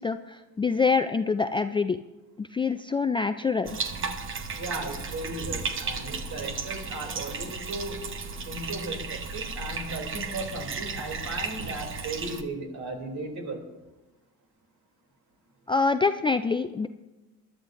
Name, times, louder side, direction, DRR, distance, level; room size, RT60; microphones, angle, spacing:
voice 1, 0.0-2.0 2.4-3.8 15.7-16.9, left 4 dB, 15° left, 9 dB, 0.3 m, -25 dB
Bathtub (filling or washing), 3.6-12.4, right 4 dB, 35° right, 1.0 m, -34 dB
voice 2, 4.6-8.0 8.4-13.6, right 2 dB, 55° right, 2 dB, 3.0 m, -36 dB
21.5 x 12.0 x 2.6 m, 1.1 s
cardioid pair, 105°, 34 cm